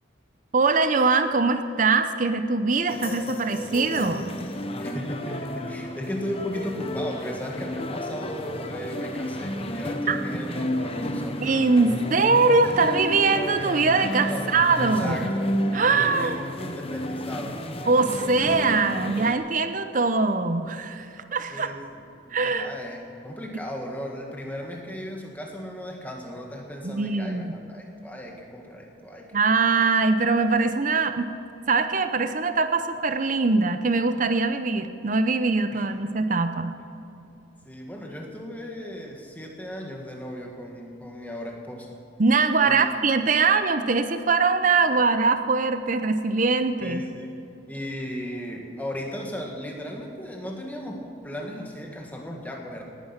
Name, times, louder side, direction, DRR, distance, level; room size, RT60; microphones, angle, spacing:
voice 1, 0.5-4.2 10.1-10.2 11.4-15.2 15.7-16.4 17.8-21.7 22.3-22.7 26.8-27.5 29.3-31.3 31.7-36.7 42.2-47.0, right 4 dB, 40° right, 9 dB, 0.6 m, -22 dB
sound 1, 2.9-19.4, equal, 30° left, 0.9 m, -32 dB
voice 2, 4.8-11.5 14.3-17.6 21.5-29.4 35.7-35.9 37.6-42.0 42.6-42.9 46.8-47.4 47.7-52.8, equal, 10° left, 0 dB, 1.7 m, -36 dB
18.5 x 10.0 x 5.8 m, 2.8 s
head